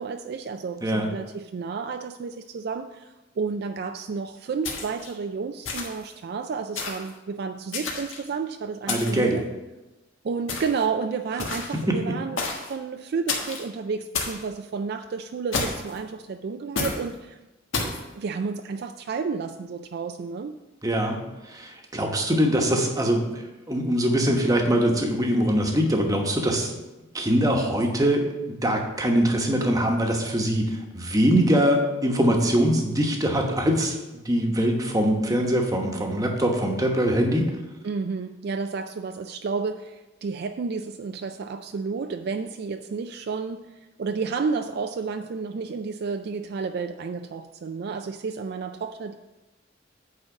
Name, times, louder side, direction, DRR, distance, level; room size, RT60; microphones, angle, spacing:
voice 1, 0.0-9.4 10.2-17.4 18.2-20.6 37.8-49.2, right 5 dB, 55° right, 7 dB, 0.3 m, -31 dB
voice 2, 0.8-1.1 8.9-9.4 11.7-12.1 20.8-21.2 21.5-26.7 27.1-34.0 34.2-37.5, equal, 20° right, 2 dB, 1.1 m, -23 dB
sound 1, 4.6-5.1 5.6-6.1 6.8-7.1 7.7-8.3 8.9-9.3 10.5-10.8 11.4-11.8 12.4-12.7 13.3-13.6 14.1-14.4 15.5-16.0 16.8-17.0 17.7-18.0, left 4 dB, 80° left, 1.4 m, -30 dB
9.0 x 3.9 x 6.9 m, 1.1 s
head